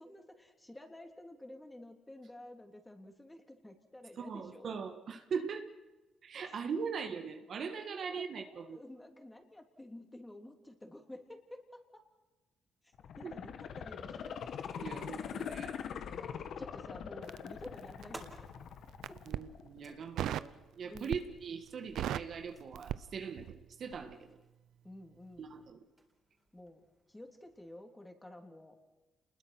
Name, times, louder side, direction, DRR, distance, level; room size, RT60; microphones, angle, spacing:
voice 1, 0.0-4.7 6.4-6.6 7.9-12.0 12.8-14.4 16.0-18.5 19.1-19.2 20.9-21.1 24.8-25.5 26.5-26.8 27.1-28.8, left 1 dB, 10° left, 4 dB, 3.4 m, -51 dB
voice 2, 4.2-5.7 6.2-8.8 13.2-13.3 14.7-15.8 19.3-24.4 25.4-25.8, right 6 dB, 55° right, 6 dB, 1.8 m, -41 dB
sound 1, 12.9-19.9 20.3-20.4, left 7 dB, 65° left, 1.6 m, -43 dB
Crackle, 17.2-18.4 18.9-19.5 20.2-20.6 20.9-21.4 21.7-23.6 23.9-24.1, right 12 dB, 80° right, 0.7 m, -38 dB
sound 2, 18.0-27.8, right 2 dB, 15° right, 4.0 m, -59 dB
28.0 x 21.0 x 6.1 m, 1.2 s
cardioid pair, 90°, 0 cm